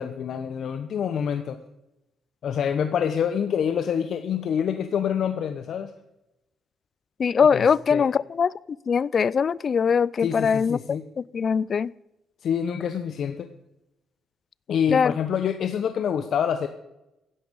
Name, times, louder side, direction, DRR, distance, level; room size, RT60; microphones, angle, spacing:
voice 1, 0.0-1.6 2.4-5.9 7.5-7.6 7.9-8.1 10.2-11.0 12.4-13.5 14.7-16.7, left 8 dB, 65° left, 8 dB, 0.9 m, -26 dB
voice 2, 7.2-8.5 8.9-10.8 11.2-11.9 14.9-15.1, left 6 dB, 45° left, 23 dB, 0.4 m, -21 dB
16.0 x 11.0 x 5.4 m, 0.93 s
cardioid pair, 90°, 0 cm